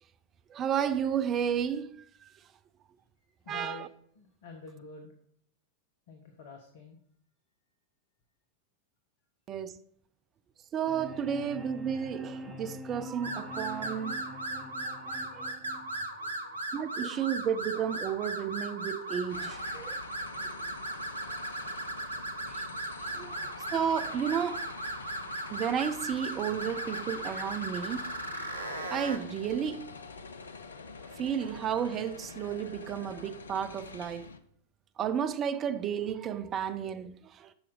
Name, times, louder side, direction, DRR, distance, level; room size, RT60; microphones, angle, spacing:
voice 1, 0.5-1.9 3.5-3.9 9.5-9.8 10.7-14.2 15.1-15.5 16.7-20.0 20.4-20.5 22.5-22.7 23.0-23.4 23.7-24.7 25.5-28.5 28.9-29.8 31.2-34.3 35.0-37.5, right 8 dB, 30° right, 0.5 m, -32 dB
voice 2, 3.4-3.9 4.2-5.1 6.1-7.0 16.4-16.6, left 4 dB, 55° left, 1.2 m, -47 dB
sound 1, 10.9-16.9, equal, ahead, 1.5 m, -45 dB
sound 2, 13.2-29.2, right 1 dB, 80° right, 1.0 m, -37 dB
sound 3, 19.3-34.4, left 4 dB, 70° left, 0.6 m, -46 dB
8.1 x 6.0 x 4.8 m
figure-of-eight pair, 90°, 0 cm